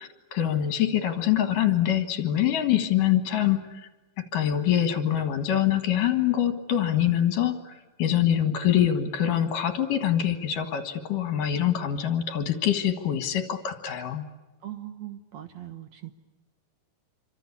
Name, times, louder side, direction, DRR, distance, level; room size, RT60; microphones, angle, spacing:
voice 1, 0.0-3.8 4.3-14.2, left 10 dB, 70° left, 8 dB, 3.2 m, -25 dB
voice 2, 14.6-16.1, right 12 dB, 60° right, 8 dB, 2.1 m, -40 dB
28.0 x 25.0 x 8.4 m, 1.1 s
omnidirectional pair, 4.0 m